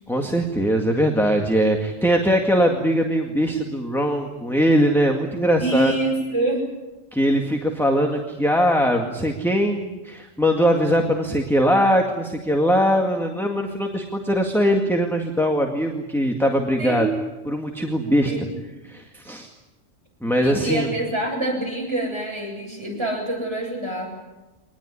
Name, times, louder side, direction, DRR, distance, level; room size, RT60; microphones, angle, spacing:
voice 1, 0.1-5.9 7.1-17.1 17.5-18.3 18.8-19.5 20.2-20.9, equal, ahead, 2 dB, 1.9 m, -21 dB
voice 2, 5.6-6.7 16.8-17.2 18.2-18.5 20.4-24.1, right 1 dB, 20° right, -1 dB, 8.1 m, -26 dB
23.5 x 20.0 x 10.0 m, 1.1 s
omnidirectional pair, 1.3 m